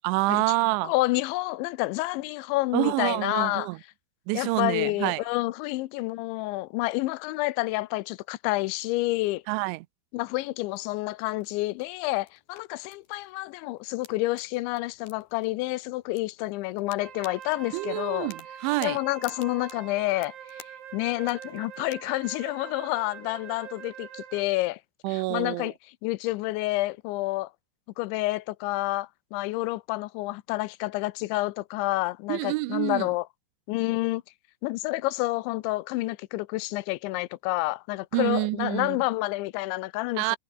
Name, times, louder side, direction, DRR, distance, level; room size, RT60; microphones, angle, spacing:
voice 1, 0.0-0.9 2.7-3.8 4.3-5.2 9.5-9.9 17.7-19.0 25.0-25.7 32.3-33.1 38.1-39.0 40.2-40.4, right 22 dB, 90° right, 3.0 m, -27 dB
voice 2, 0.8-3.7 4.3-9.4 10.1-18.3 18.8-20.3 20.9-24.8 25.1-25.7 26.0-27.5 28.0-33.3 33.7-34.2 34.6-40.4, left 20 dB, 85° left, 3.1 m, -29 dB
sound 1, 10.6-22.0, left 8 dB, 55° left, 4.5 m, -54 dB
Wind instrument woodwind instrument, 17.0-24.6, right 10 dB, 65° right, 4.4 m, -44 dB
omnidirectional pair, 5.2 m